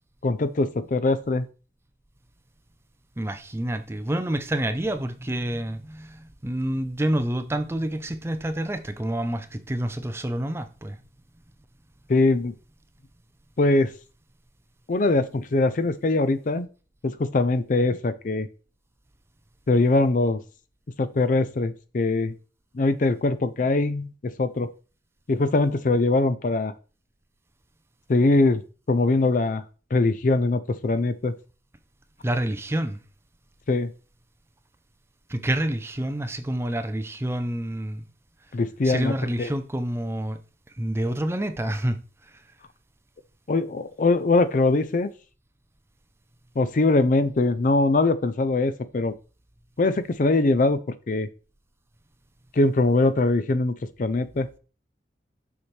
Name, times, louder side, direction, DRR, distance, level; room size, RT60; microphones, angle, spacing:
voice 1, 0.2-1.5 12.1-12.5 13.6-13.9 14.9-16.7 17.0-18.5 19.7-20.4 21.0-22.3 22.7-24.1 24.4-24.7 25.3-26.7 28.1-28.6 28.9-29.6 29.9-31.3 33.7-33.9 38.5-39.1 39.4-39.5 43.5-45.1 46.6-49.1 49.8-51.3 52.5-54.5, left 2 dB, 45° left, 0.5 m, -22 dB
voice 2, 3.2-11.0 32.2-33.0 35.3-38.0 38.8-40.4 40.8-42.0, right 1 dB, 15° right, 0.5 m, -28 dB
7.0 x 5.8 x 3.3 m
head